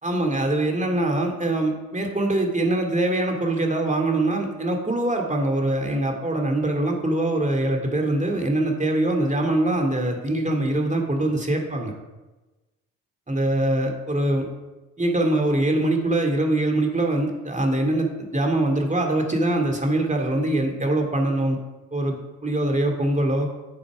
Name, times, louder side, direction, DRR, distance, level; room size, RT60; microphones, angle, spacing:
voice 1, 0.0-11.9 13.3-14.5 15.0-21.6 21.9-22.2 22.4-23.5, right 1 dB, 20° right, 2 dB, 2.6 m, -23 dB
9.6 x 7.5 x 4.9 m, 1.1 s
hypercardioid pair, 50°, 41 cm